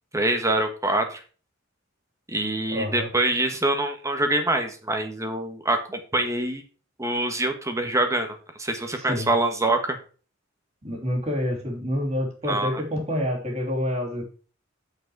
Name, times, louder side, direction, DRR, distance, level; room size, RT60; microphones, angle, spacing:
voice 1, 0.1-1.2 2.3-6.6 7.0-10.0 12.5-12.8, right 2 dB, 15° right, 6 dB, 1.3 m, -25 dB
voice 2, 2.7-3.1 9.0-9.3 10.8-14.2, equal, 35° right, -1 dB, 3.1 m, -28 dB
7.6 x 6.7 x 4.8 m, 0.37 s
head